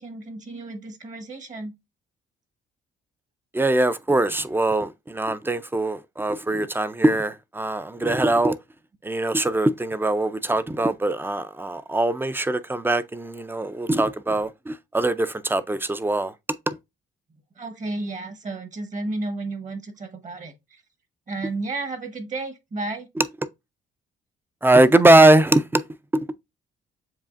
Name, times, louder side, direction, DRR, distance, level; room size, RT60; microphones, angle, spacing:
voice 1, 0.0-1.7 17.6-20.8 21.3-23.1, right 2 dB, 40° right, 1.1 m, -32 dB
voice 2, 3.5-8.6 9.0-16.3 16.7-16.8 23.2-23.3 24.6-25.8 26.1-26.3, right 2 dB, 10° right, 0.4 m, -21 dB
7.3 x 2.4 x 2.4 m
cardioid pair, 90°, 20 cm